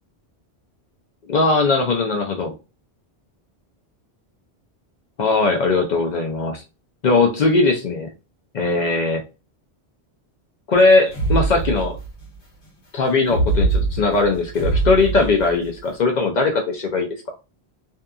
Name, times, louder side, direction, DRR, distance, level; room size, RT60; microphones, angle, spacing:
voice 1, 1.3-2.5 5.2-6.6 7.0-8.1 8.5-9.2 10.7-12.0 12.9-17.1, left 3 dB, 60° left, 3 dB, 0.5 m, -19 dB
sound 1, 11.1-12.2 13.2-15.7, right 3 dB, 80° left, 1.2 m, -23 dB
2.7 x 2.4 x 2.2 m, 0.29 s
omnidirectional pair, 1.1 m